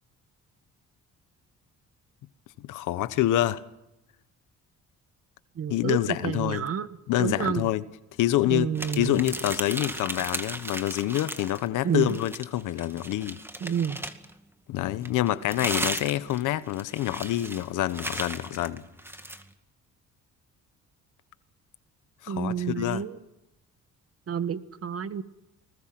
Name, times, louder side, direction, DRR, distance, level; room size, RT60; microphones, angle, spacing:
voice 1, 2.6-3.6 5.7-6.7 7.1-7.9 8.2-13.4 14.7-18.8 22.2-23.0, left 14 dB, 90° left, 1.2 m, -27 dB
voice 2, 5.6-6.0 6.2-6.9 7.2-7.6 8.5-9.2 11.8-12.1 13.6-14.0 22.3-23.1 24.3-25.2, right 8 dB, 50° right, 1.5 m, -29 dB
sound 1, 8.7-11.7 12.0-14.3 15.0-19.4, right 1 dB, 10° right, 2.2 m, -35 dB
30.0 x 20.5 x 6.1 m
cardioid pair, 90°, 30 cm